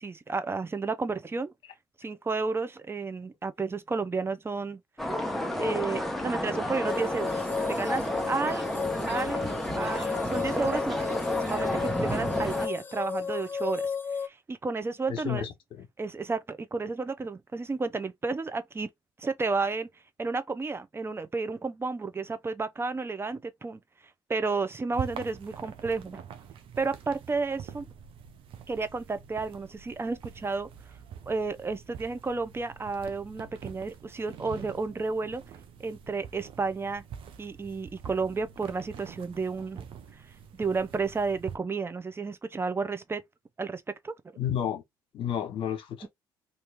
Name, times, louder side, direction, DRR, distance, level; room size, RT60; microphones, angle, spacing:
voice 1, 0.0-1.5 2.0-4.8 5.6-8.7 9.1-13.9 14.2-15.5 16.0-18.9 19.2-19.9 20.2-23.8 24.3-26.3 26.8-27.9 28.7-30.7 31.3-35.4 35.8-37.0 37.4-39.9 40.5-43.2 43.6-44.1, right 4 dB, 25° right, 0.7 m, -32 dB
sound 1, 5.0-12.7, left 1 dB, ahead, 1.1 m, -31 dB
sound 2, 6.8-14.3, left 6 dB, 20° left, 0.7 m, -34 dB
voice 2, 15.1-15.9 44.4-44.8 45.1-46.1, left 9 dB, 65° left, 1.2 m, -31 dB
sound 3, 24.9-41.6, right 8 dB, 65° right, 0.8 m, -45 dB
3.1 x 2.7 x 3.4 m
supercardioid pair, 70°, 10 cm